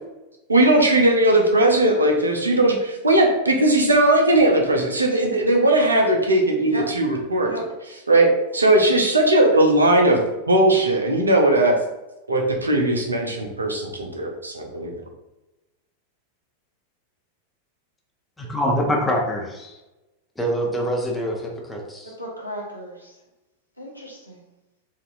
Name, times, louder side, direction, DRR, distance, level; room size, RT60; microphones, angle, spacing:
voice 1, 0.5-7.7 8.1-10.2 10.5-11.7 12.3-14.9, right 1 dB, 80° right, 2 dB, 0.6 m, -18 dB
voice 2, 18.4-19.8 20.4-22.1, equal, 10° left, -1 dB, 0.7 m, -25 dB
voice 3, 22.0-23.1 23.8-24.4, equal, 90° left, -3 dB, 0.9 m, -35 dB
4.1 x 2.6 x 2.5 m, 1.0 s
figure-of-eight pair, 90°, 0 cm